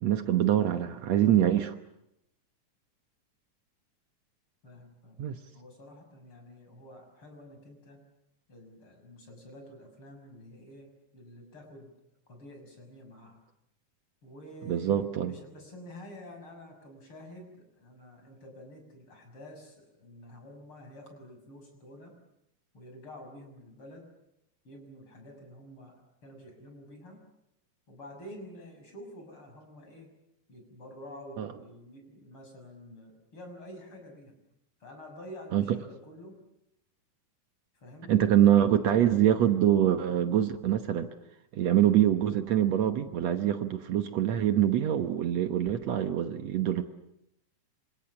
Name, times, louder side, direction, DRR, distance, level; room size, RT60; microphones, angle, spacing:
voice 1, 0.0-1.8 5.2-5.4 14.7-15.3 31.4-31.5 35.5-35.6 38.1-41.1 41.5-46.8, right 11 dB, 65° right, 8 dB, 2.2 m, -24 dB
voice 2, 4.6-5.3 5.5-8.0 8.5-11.9 12.3-13.4 14.2-22.1 22.7-24.1 24.6-26.0 26.2-27.2 27.9-30.1 30.5-34.3 34.8-36.4 37.8-38.2 38.8-39.0, left 1 dB, 40° left, 4 dB, 7.3 m, -49 dB
27.5 x 26.5 x 7.1 m, 0.83 s
omnidirectional pair, 3.5 m